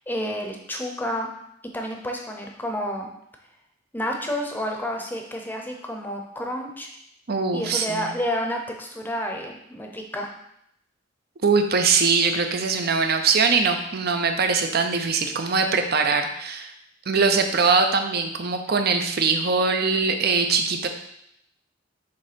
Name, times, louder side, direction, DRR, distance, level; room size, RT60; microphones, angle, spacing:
voice 1, 0.1-1.3 1.7-3.1 3.9-6.9 7.5-10.3, equal, 10° left, 1 dB, 0.8 m, -30 dB
voice 2, 7.3-8.1 11.4-16.7 17.1-20.9, right 4 dB, 50° right, 6 dB, 0.7 m, -22 dB
6.8 x 3.3 x 5.1 m, 0.75 s
head